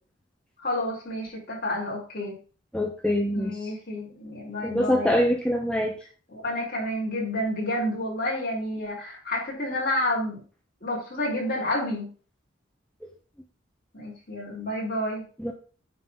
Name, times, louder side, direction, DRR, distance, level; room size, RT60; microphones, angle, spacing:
voice 1, 0.6-2.3 3.3-5.1 6.3-10.4 10.8-12.1 13.9-15.2, left 1 dB, 45° left, -4 dB, 4.6 m, -30 dB
voice 2, 2.7-3.7 4.6-5.9 15.4-15.5, left 1 dB, 5° left, 1 dB, 0.7 m, -24 dB
9.3 x 4.0 x 5.7 m, 0.39 s
head